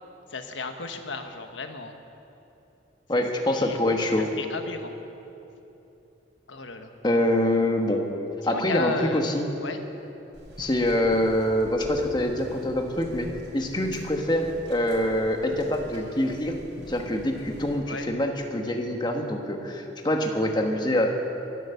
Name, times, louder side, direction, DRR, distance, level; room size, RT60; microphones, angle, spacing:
voice 1, 0.3-2.0 3.1-3.8 4.2-4.9 6.5-6.9 8.4-9.2 9.6-9.8 17.8-18.1, left 4 dB, 85° left, 6 dB, 1.2 m, -34 dB
voice 2, 3.1-4.3 7.0-8.1 8.4-9.5 10.6-13.3 13.5-16.5 16.9-21.2, left 1 dB, 25° left, 3 dB, 1.3 m, -25 dB
sound 1, 10.3-17.8, equal, 80° right, 3.6 m, -44 dB
23.0 x 8.1 x 6.9 m, 3.0 s
head